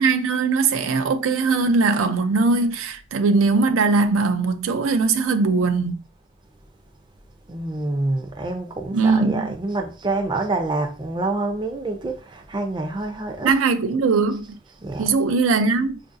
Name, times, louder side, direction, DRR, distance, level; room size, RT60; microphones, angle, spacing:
voice 1, 0.0-5.9 8.9-9.5 13.4-14.5 15.0-16.0, right 4 dB, 90° right, 0.4 m, -20 dB
voice 2, 7.5-13.6 14.4-15.2, right 2 dB, 25° right, 0.4 m, -27 dB
4.6 x 2.6 x 2.5 m
head